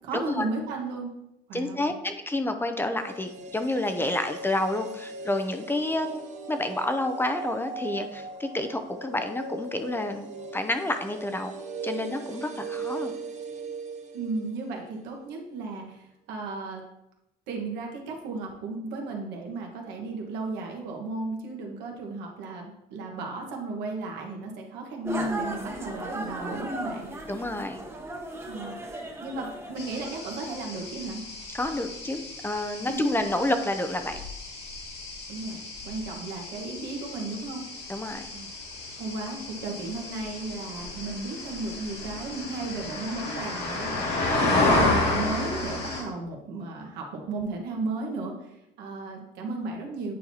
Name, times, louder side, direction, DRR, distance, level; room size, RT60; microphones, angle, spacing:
voice 1, 0.0-1.1 1.5-1.9 5.9-6.1 14.1-16.8 17.5-27.1 28.5-28.7 29.2-31.2 32.9-33.2 35.3-35.6 35.8-37.6 38.3-38.5 39.0-50.1, right 3 dB, 90° right, 0 dB, 1.4 m, -34 dB
voice 2, 1.5-6.2 6.5-11.5 11.8-13.1 27.3-27.8 31.5-34.2 37.9-38.3, left 1 dB, 15° left, 7 dB, 0.5 m, -29 dB
sound 1, 2.9-15.0 15.3-15.4, right 3 dB, 45° right, 0.8 m, -39 dB
sound 2, 25.0-30.6, right 1 dB, 15° right, 0.9 m, -36 dB
sound 3, 29.8-46.0, left 2 dB, 80° left, 2.1 m, -31 dB
9.0 x 4.5 x 2.8 m, 0.84 s
cardioid pair, 110°, 17 cm